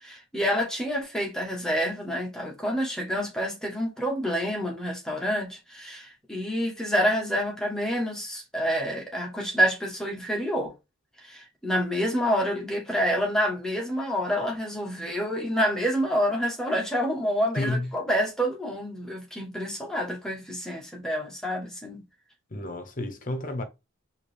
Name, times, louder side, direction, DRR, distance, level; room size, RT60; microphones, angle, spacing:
voice 1, 0.0-10.7 11.2-22.0, equal, 5° left, 1.3 m, -28 dB
voice 2, 17.6-17.9 22.5-23.6, left 2 dB, 40° left, 0.9 m, -30 dB
4.9 x 2.9 x 3.4 m
head